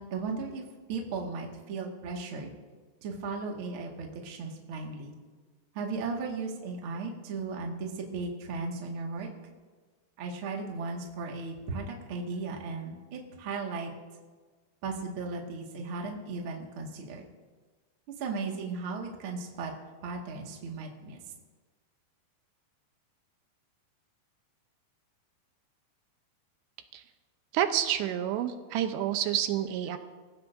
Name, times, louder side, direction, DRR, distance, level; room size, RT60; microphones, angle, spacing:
voice 1, 0.0-2.5 3.0-5.1 5.7-9.3 10.2-13.9 14.8-17.2 18.2-19.7 20.0-21.2, right 4 dB, 45° right, 0 dB, 1.8 m, -36 dB
voice 2, 27.5-30.0, right 11 dB, 85° right, 8 dB, 2.9 m, -29 dB
27.0 x 15.0 x 2.6 m, 1.4 s
omnidirectional pair, 4.9 m